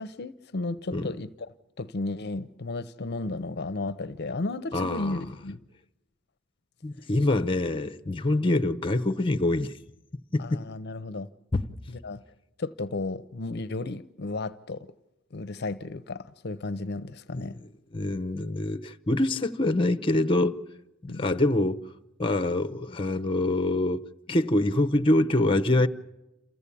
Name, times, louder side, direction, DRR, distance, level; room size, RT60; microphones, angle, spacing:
voice 1, 0.0-1.3 1.8-5.6 8.4-8.5 10.4-11.3 11.9-12.2 12.6-14.9 15.3-17.6 21.1-21.3, left 2 dB, 55° left, 0.7 m, -34 dB
voice 2, 4.7-5.3 6.8-9.7 10.3-10.6 11.5-11.6 17.3-17.4 17.9-20.6 21.0-21.8 22.2-25.9, left 2 dB, 25° left, 0.8 m, -25 dB
28.0 x 15.0 x 8.5 m
head